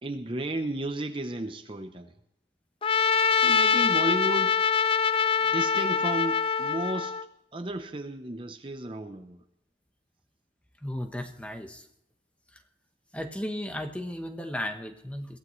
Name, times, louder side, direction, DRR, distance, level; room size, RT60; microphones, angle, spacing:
voice 1, 0.0-2.1 3.4-4.6 5.4-7.2 7.5-9.4, right 1 dB, 25° right, 7 dB, 0.7 m, -33 dB
Trumpet, 2.8-7.2, left 6 dB, 30° left, 0.4 m, -24 dB
voice 2, 10.8-11.8 13.1-15.4, left 1 dB, 5° left, 5 dB, 1.0 m, -35 dB
22.0 x 16.0 x 3.2 m, 0.82 s
head